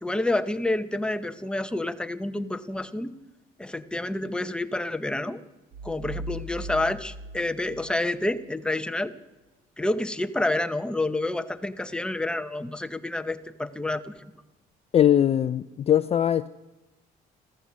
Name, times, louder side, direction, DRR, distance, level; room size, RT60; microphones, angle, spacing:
voice 1, 0.0-3.1 3.6-5.4 5.8-9.1 9.8-14.3, left 2 dB, 5° left, 10 dB, 0.9 m, -29 dB
sound 1, 5.7-8.5, right 1 dB, 65° right, 1.9 m, -39 dB
voice 2, 14.9-16.5, left 10 dB, 35° left, 15 dB, 0.4 m, -21 dB
15.0 x 14.0 x 6.2 m, 1.1 s
cardioid pair, 110°, 17 cm